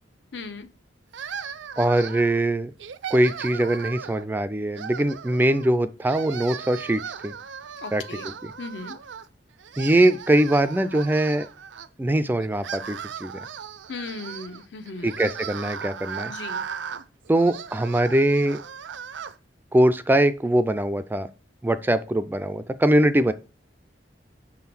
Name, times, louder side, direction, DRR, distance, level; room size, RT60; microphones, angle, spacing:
voice 1, 0.3-0.7 7.8-8.3 8.6-9.0 13.9-15.1 16.3-16.6, left 3 dB, 70° left, 10 dB, 0.9 m, -37 dB
sound 1, 1.1-2.4 2.8-4.3 4.7-5.7 6.0-9.3 9.6-11.9 12.4-19.3, right 7 dB, 75° right, 0.5 m, -37 dB
voice 2, 1.8-2.7 3.1-7.3 7.9-8.0 8.4-8.5 9.8-11.5 12.0-13.3 15.0-16.3 17.3-18.6 19.7-21.3 21.6-23.3, right 1 dB, 10° right, 13 dB, 0.3 m, -22 dB
6.1 x 3.7 x 5.9 m, 0.33 s
head